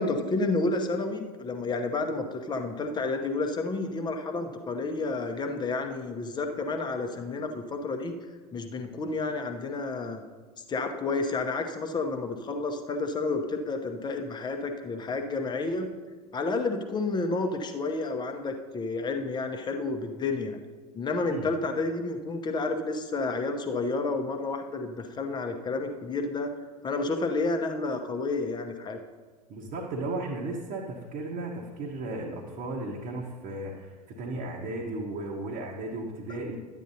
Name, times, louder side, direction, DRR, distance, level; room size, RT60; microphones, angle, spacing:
voice 1, 0.0-8.1 8.5-10.2 10.7-15.9 16.3-20.6 20.9-26.5 26.8-29.0, left 3 dB, 20° left, 5 dB, 0.8 m, -30 dB
voice 2, 29.5-33.9 34.2-36.6, right 2 dB, 40° right, -3 dB, 1.1 m, -35 dB
11.5 x 9.1 x 2.7 m, 1.4 s
figure-of-eight pair, 80°, 20 cm